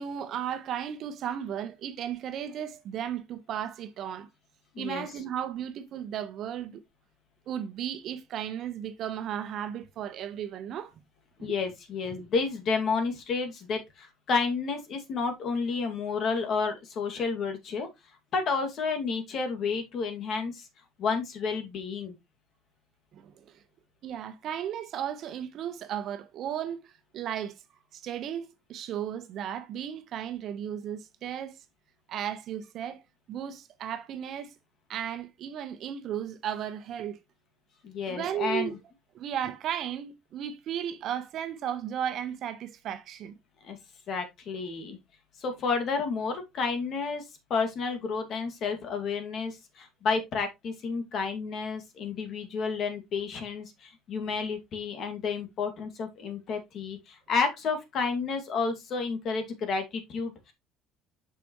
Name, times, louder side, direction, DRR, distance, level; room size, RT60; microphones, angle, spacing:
voice 1, 0.0-4.3 4.8-6.8 7.5-10.9 11.4-11.5 12.1-12.3 23.1-23.6 24.0-27.6 27.9-31.6 32.1-33.0 33.3-34.5 34.9-37.2 38.1-38.8 39.1-43.4, right 9 dB, 55° right, 1.1 m, -35 dB
voice 2, 4.7-5.1 11.4-17.9 18.3-20.7 21.0-22.1 37.8-38.8 43.6-43.8 44.1-45.0 45.4-60.5, left 5 dB, 50° left, 2.2 m, -31 dB
7.0 x 6.0 x 3.1 m
cardioid pair, 115°, 0 cm